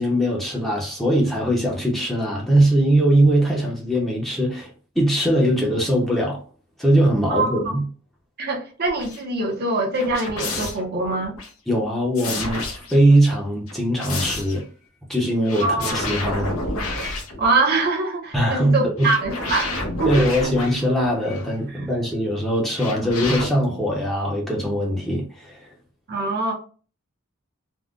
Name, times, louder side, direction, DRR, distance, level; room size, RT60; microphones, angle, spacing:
voice 1, 0.0-6.4 6.8-7.8 11.7-12.7 12.9-14.6 15.1-16.5 18.3-19.1 20.1-25.7, right 1 dB, ahead, 0.6 m, -21 dB
voice 2, 7.3-7.7 8.4-11.3 15.6-16.0 17.4-20.3 21.7-21.9 26.1-26.5, right 3 dB, 50° right, 0.6 m, -24 dB
sound 1, 8.9-9.2 10.0-11.5 12.2-13.2 13.7-14.6 15.5-17.9 19.0-21.6 22.8-23.5, left 2 dB, 85° left, 0.8 m, -30 dB
3.6 x 2.1 x 2.4 m
head